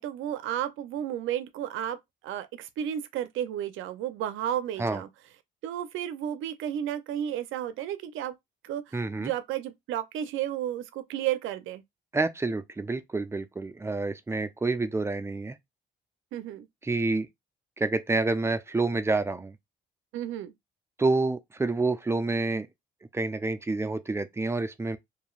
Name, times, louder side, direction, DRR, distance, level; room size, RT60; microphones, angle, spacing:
voice 1, 0.0-2.0 2.2-5.1 5.6-8.3 8.6-11.8 16.3-16.7 20.1-20.5, right 11 dB, 85° right, 0.4 m, -32 dB
voice 2, 8.9-9.3 12.1-15.6 16.8-17.3 17.8-19.5 21.0-22.7 23.1-25.0, right 3 dB, 15° right, 0.4 m, -28 dB
3.0 x 2.5 x 2.3 m
cardioid pair, 90°, 20 cm